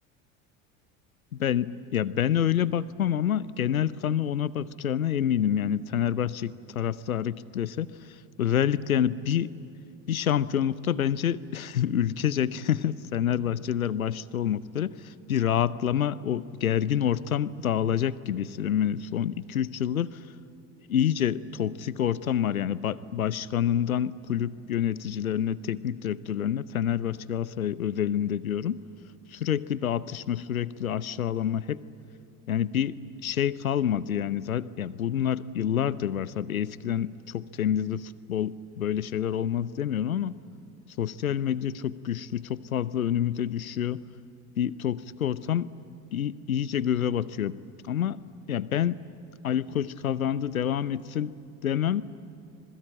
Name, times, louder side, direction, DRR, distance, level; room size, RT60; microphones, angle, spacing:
voice 1, 1.3-7.9 8.4-9.5 10.1-20.1 20.9-28.8 29.3-31.8 32.5-33.0 33.2-40.3 41.0-44.0 44.6-45.7 46.1-47.5 47.8-48.2 48.5-49.0 49.4-51.3 51.6-52.0, left 9 dB, 85° left, 18 dB, 0.8 m, -27 dB
26.5 x 21.5 x 8.8 m, 2.5 s
figure-of-eight pair, 70°, 41 cm